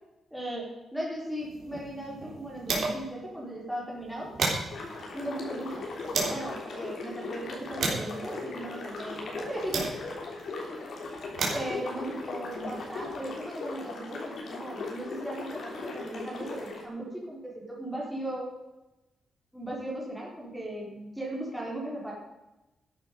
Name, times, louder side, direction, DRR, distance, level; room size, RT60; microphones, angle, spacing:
voice 1, 0.3-4.3 5.1-5.8 6.1-9.9 11.5-18.5 19.5-22.1, right 1 dB, ahead, -4 dB, 3.8 m, -37 dB
sound 1, 1.4-3.2 3.5-3.6 3.9-6.5 7.1-10.3 11.0-13.2, right 3 dB, 60° right, 3.4 m, -35 dB
sound 2, 4.7-16.8, left 3 dB, 55° left, 3.4 m, -38 dB
13.0 x 11.0 x 5.2 m, 0.99 s
wide cardioid pair, 165°, 0 cm